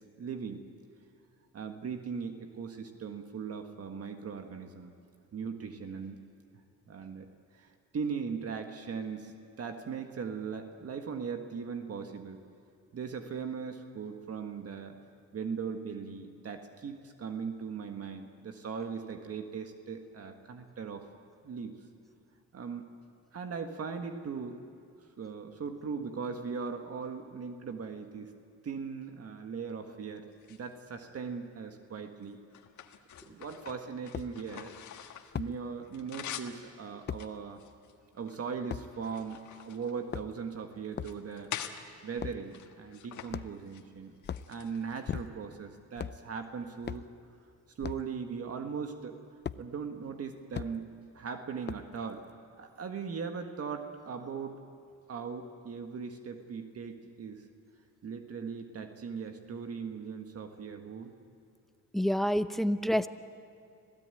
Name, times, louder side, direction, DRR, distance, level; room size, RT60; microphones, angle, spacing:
voice 1, 0.2-0.6 1.5-5.0 5.3-6.2 6.9-7.3 7.6-9.3 9.6-12.4 12.9-15.0 15.3-21.1 21.4-21.7 22.5-22.9 23.3-24.6 25.2-28.3 28.6-32.4 33.2-34.7 35.3-37.6 38.1-41.5 42.0-44.2 44.5-47.1 47.8-49.2 49.6-52.2 52.6-54.6 55.1-57.4 58.0-61.1, right 6 dB, 50° right, 6 dB, 1.6 m, -39 dB
sound 1, 30.3-31.3 31.9-35.4 35.7-36.6 37.1-38.4 38.8-40.5 40.9-41.8 42.5-43.3 43.6-43.8 44.2-45.2, left 10 dB, 70° left, 1.6 m, -45 dB
sound 2, 33.1-33.2 34.1-34.3 35.3-35.5 37.1-37.2 38.7-38.9 39.9-40.5 40.9-41.2 42.2-42.4 43.3-43.7 44.2-44.5 45.1-45.5 45.9-46.2 46.8-47.1 47.8-48.1 49.4-49.6 50.5-50.7 51.7-52.0, left 8 dB, 35° left, 0.6 m, -38 dB
voice 2, 61.9-63.1, equal, ahead, 12 dB, 0.8 m, -27 dB
26.0 x 17.0 x 9.2 m, 2.5 s
cardioid pair, 90°, 30 cm